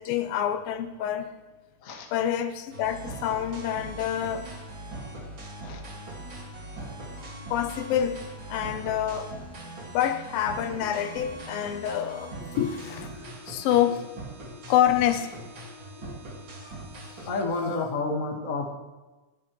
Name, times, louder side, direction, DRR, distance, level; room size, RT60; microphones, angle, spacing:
voice 1, 0.0-1.3 2.1-4.5 7.5-8.2 8.5-9.3 9.9-14.1 14.7-15.3 16.0-16.1, left 10 dB, 80° left, 9 dB, 2.7 m, -27 dB
sound 1, 2.7-17.4, right 1 dB, 35° right, 2.7 m, -41 dB
voice 2, 17.3-18.8, left 3 dB, 35° left, 1 dB, 1.4 m, -30 dB
28.5 x 10.5 x 3.2 m, 1.2 s
omnidirectional pair, 4.1 m